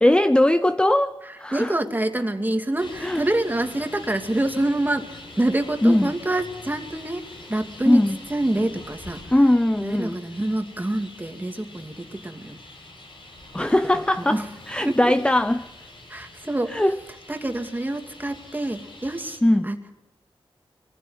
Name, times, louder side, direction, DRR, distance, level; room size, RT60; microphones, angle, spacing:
voice 1, 0.0-1.7 3.0-3.2 5.8-6.1 7.9-8.2 9.3-10.2 13.5-14.4 14.7-15.7 16.7-17.0 19.4-19.7, left 1 dB, 10° left, 0.7 m, -20 dB
voice 2, 1.5-7.2 7.5-8.0 8.3-9.2 9.8-12.6 13.6-14.4 14.8-15.0 16.1-16.8 17.3-19.8, right 1 dB, 20° right, 2.4 m, -26 dB
Traffic noise roadway noise, 2.8-19.4, left 2 dB, 55° left, 7.4 m, -44 dB
23.0 x 15.5 x 9.4 m
wide cardioid pair, 90°, 10 cm